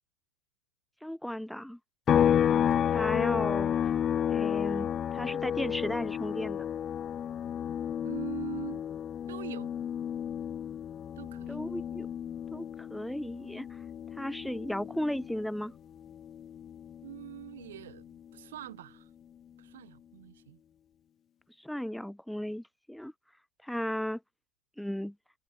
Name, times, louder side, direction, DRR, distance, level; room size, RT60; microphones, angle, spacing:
voice 1, 1.0-1.8 2.9-3.7 4.3-6.7 11.5-12.1 12.5-13.8 14.1-15.7 21.6-23.1 23.6-24.2 24.8-25.1, equal, ahead, 0.3 m, -35 dB
sound 1, 2.1-15.6 16.0-18.2, left 9 dB, 30° left, 0.7 m, -31 dB
voice 2, 8.0-8.8 9.3-9.7 11.2-11.6 17.0-19.1 19.6-20.6, right 13 dB, 75° right, 6.4 m, -43 dB
hypercardioid pair, 110°, 0 cm